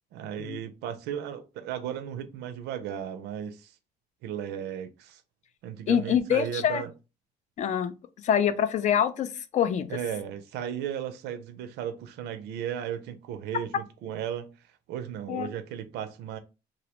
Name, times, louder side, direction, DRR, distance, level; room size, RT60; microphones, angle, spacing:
voice 1, 0.1-3.7 4.2-5.2 5.6-6.9 9.9-16.4, right 9 dB, 80° right, 0.4 m, -35 dB
voice 2, 5.9-6.8 7.6-7.9 8.2-9.9 15.3-15.5, left 9 dB, 45° left, 0.4 m, -25 dB
2.5 x 2.0 x 2.9 m
cardioid pair, 110°, 17 cm